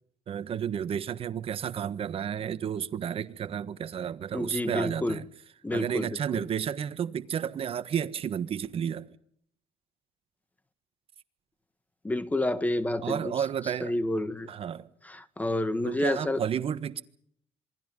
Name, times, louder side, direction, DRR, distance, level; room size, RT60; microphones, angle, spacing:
voice 1, 0.3-5.3 5.7-9.1 13.0-13.9 14.5-14.9 15.8-17.0, right 8 dB, 45° right, 1.5 m, -32 dB
voice 2, 4.3-5.2 5.6-6.4 12.0-13.3 13.8-14.5 15.0-16.4, left 1 dB, 10° left, 1.5 m, -29 dB
27.0 x 22.5 x 5.5 m
cardioid pair, 105°, 13 cm